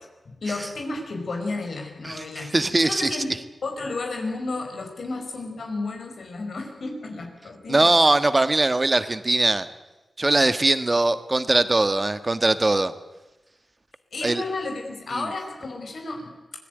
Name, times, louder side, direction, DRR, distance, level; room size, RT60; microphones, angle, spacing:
voice 1, 0.2-3.3 3.6-8.0 10.4-10.5 14.1-16.3, left 3 dB, 75° left, 3 dB, 4.8 m, -32 dB
voice 2, 2.0-3.2 7.7-9.7 10.2-12.9 14.2-14.4 15.1-15.3, right 2 dB, 35° right, 12 dB, 1.5 m, -21 dB
24.5 x 16.5 x 9.2 m, 1.1 s
cardioid pair, 60°, 0 cm